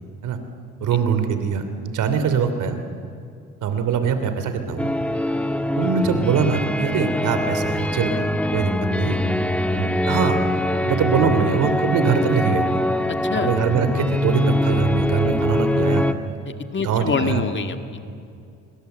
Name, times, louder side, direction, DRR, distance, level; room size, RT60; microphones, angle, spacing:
voice 1, 0.8-2.8 3.6-4.9 5.7-8.3 8.5-9.2 9.7-10.4 10.9-12.8 13.4-16.1 16.8-17.4 18.1-18.2, right 6 dB, 80° right, 8 dB, 3.0 m, -22 dB
sound 1, 4.8-16.1, left 1 dB, 5° left, 1.4 m, -23 dB
voice 2, 13.1-13.5 16.5-18.0, left 5 dB, 40° left, 7 dB, 1.9 m, -26 dB
25.0 x 25.0 x 8.1 m, 2.5 s
cardioid pair, 90°, 30 cm